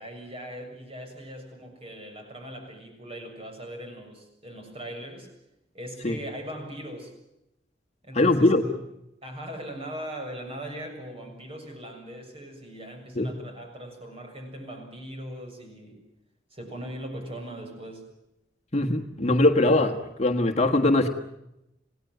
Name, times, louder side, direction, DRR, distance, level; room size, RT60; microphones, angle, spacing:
voice 1, 0.0-5.3 5.7-7.1 8.0-8.8 9.2-16.0 16.5-18.1, right 1 dB, 35° right, 4 dB, 7.0 m, -40 dB
voice 2, 8.1-8.6 13.2-13.3 18.7-21.1, left 2 dB, 40° left, 5 dB, 1.6 m, -21 dB
27.5 x 18.0 x 9.3 m, 0.87 s
head